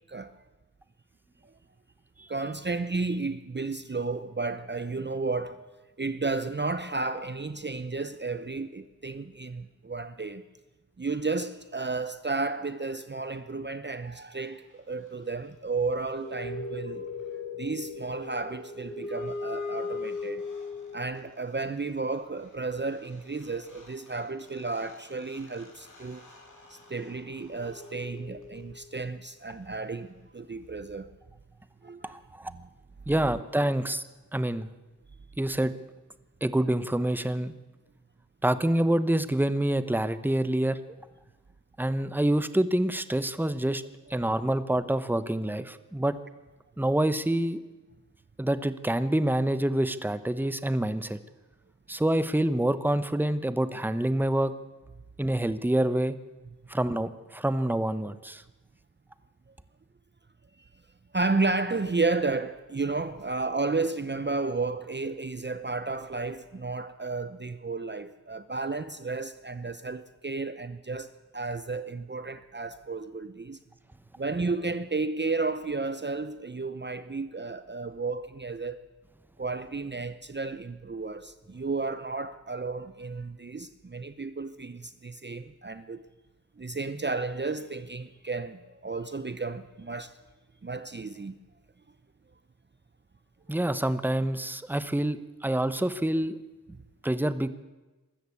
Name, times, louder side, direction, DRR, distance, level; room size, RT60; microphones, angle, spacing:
voice 1, 0.1-0.4 2.3-5.7 6.0-10.4 11.0-17.1 17.6-20.5 20.9-26.2 26.7-31.1 31.8-32.1 32.5-32.6 61.1-73.6 74.2-78.8 79.4-86.0 86.6-90.2 90.6-91.4, right 3 dB, 30° right, 0.8 m, -32 dB
sound 1, 15.8-21.2 23.1-23.2 23.4-28.8, left 4 dB, 65° left, 5.9 m, -39 dB
voice 2, 32.0-32.5 33.1-34.0 34.3-34.7 35.4-35.7 36.4-37.5 38.4-40.8 41.8-43.8 44.1-46.2 46.8-47.6 48.4-51.2 51.9-54.5 55.2-56.1 56.7-58.4 93.5-96.4 97.0-97.5, right 1 dB, 5° right, 1.0 m, -27 dB
23.0 x 13.5 x 8.5 m
wide cardioid pair, 90°, 34 cm